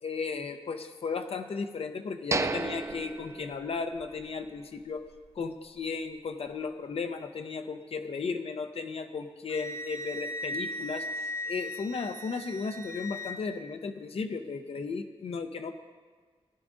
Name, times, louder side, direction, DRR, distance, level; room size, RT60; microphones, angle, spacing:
voice 1, 0.0-5.1 5.4-15.7, left 4 dB, 75° left, 6 dB, 0.6 m, -35 dB
sound 1, 2.3-4.2 4.6-4.7 5.2-5.4, right 3 dB, 30° right, 0.4 m, -33 dB
Wind instrument woodwind instrument, 9.5-13.4, left 1 dB, 25° left, 0.6 m, -37 dB
16.0 x 11.0 x 2.6 m, 1.5 s
wide cardioid pair, 140°, 10 cm